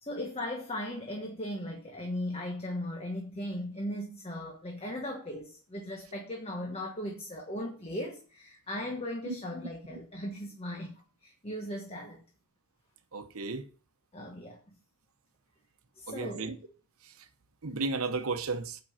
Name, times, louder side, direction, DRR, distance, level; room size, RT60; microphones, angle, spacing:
voice 1, 0.0-10.9 11.2-12.2 14.1-14.6 16.0-16.5, left 1 dB, 25° left, 1.3 m, -37 dB
voice 2, 13.1-13.6 16.1-16.5 17.6-18.8, right 3 dB, 70° right, 0.9 m, -33 dB
8.8 x 5.4 x 7.4 m
head